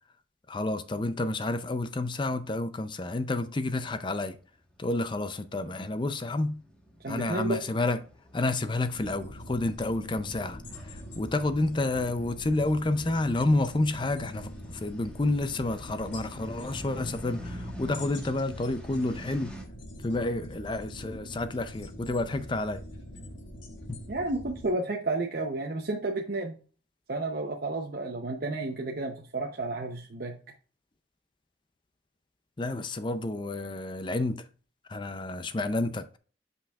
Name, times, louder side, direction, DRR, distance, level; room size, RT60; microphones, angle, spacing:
voice 1, 0.5-4.4 4.8-6.6 7.1-8.0 8.3-10.6 10.9-19.6 20.0-22.8 23.9-24.0 32.6-34.5 34.9-36.2, left 2 dB, 25° left, 0.5 m, -30 dB
sound 1, 4.5-19.6, equal, 5° left, 1.3 m, -48 dB
voice 2, 7.0-7.6 24.1-26.6 27.1-30.4, right 2 dB, 55° right, 0.8 m, -31 dB
sound 2, 8.9-24.7, equal, 85° left, 1.8 m, -44 dB
8.6 x 5.4 x 2.4 m
head